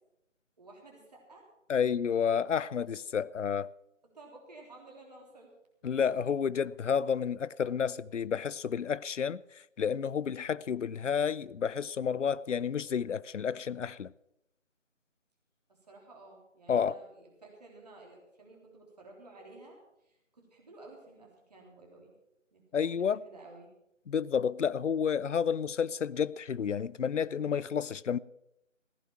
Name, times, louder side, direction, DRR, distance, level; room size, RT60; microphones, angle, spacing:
voice 1, 0.6-1.4 4.1-5.5 15.7-19.8 20.0-22.1 22.5-23.7, right 2 dB, 30° right, 3.3 m, -53 dB
voice 2, 1.7-3.7 5.8-14.1 16.7-17.0 22.7-23.2 24.1-28.2, left 7 dB, 65° left, 0.6 m, -30 dB
15.0 x 11.0 x 5.9 m
figure-of-eight pair, 170°, 39 cm